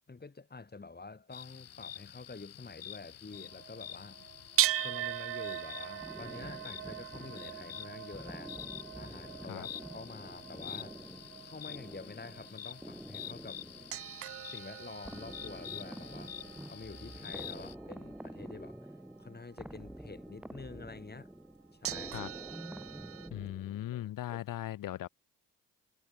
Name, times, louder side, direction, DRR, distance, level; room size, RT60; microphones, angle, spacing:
voice 1, 0.1-4.2 4.8-8.6 8.9-11.0 11.4-13.6 14.5-16.3 16.7-18.9 19.2-21.3 21.8-22.2 23.9-24.0 24.3-24.4, left 3 dB, 25° left, 5.0 m, -48 dB
sound 1, 1.3-17.7, left 10 dB, 40° left, 0.7 m, -48 dB
sound 2, 3.3-19.5 20.4-20.5 21.8-23.3, right 13 dB, 40° right, 0.4 m, -40 dB
sound 3, 6.0-24.1, right 1 dB, 5° right, 1.3 m, -48 dB
voice 2, 23.3-25.1, left 13 dB, 60° left, 1.3 m, -38 dB
hypercardioid pair, 55°, 38 cm